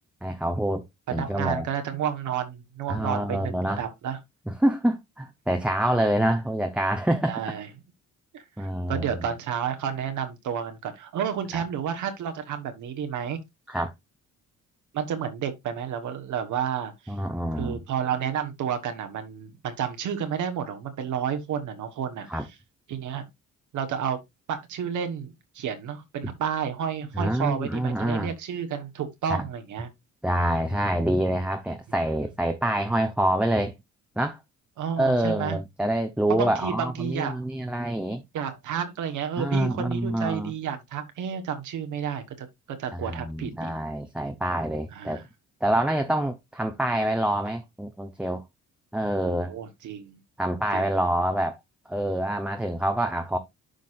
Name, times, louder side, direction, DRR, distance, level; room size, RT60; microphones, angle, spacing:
voice 1, 0.2-0.8 1.1-1.7 2.9-3.8 4.5-7.4 8.6-9.3 11.5-11.6 13.7-13.9 17.1-17.8 22.3-22.4 27.1-28.3 29.2-29.4 30.2-33.7 34.2-34.4 35.0-38.2 39.4-40.5 42.9-45.2 45.6-48.4 48.9-49.5 50.4-51.6 51.9-53.4, right 1 dB, 5° right, 0.8 m, -26 dB
voice 2, 1.1-4.2 7.3-7.7 8.3-13.4 14.9-17.1 17.5-22.3 22.9-23.2 23.7-24.2 24.5-29.9 34.8-35.6 36.3-37.4 38.3-43.7 44.9-45.2 49.2-50.2 50.7-50.8, right 8 dB, 75° right, 1.4 m, -31 dB
11.5 x 4.1 x 2.5 m
cardioid pair, 90°, 30 cm